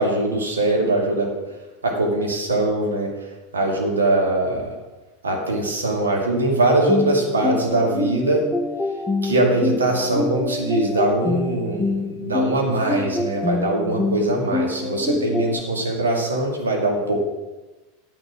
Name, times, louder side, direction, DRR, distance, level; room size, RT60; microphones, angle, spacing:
voice 1, 0.0-1.3 1.8-4.7 5.2-8.5 9.2-17.2, right 2 dB, 75° right, 0 dB, 2.1 m, -22 dB
sound 1, 6.9-15.6, left 3 dB, 10° left, 0.6 m, -26 dB
9.3 x 8.9 x 4.9 m, 1.1 s
figure-of-eight pair, 85°, 0 cm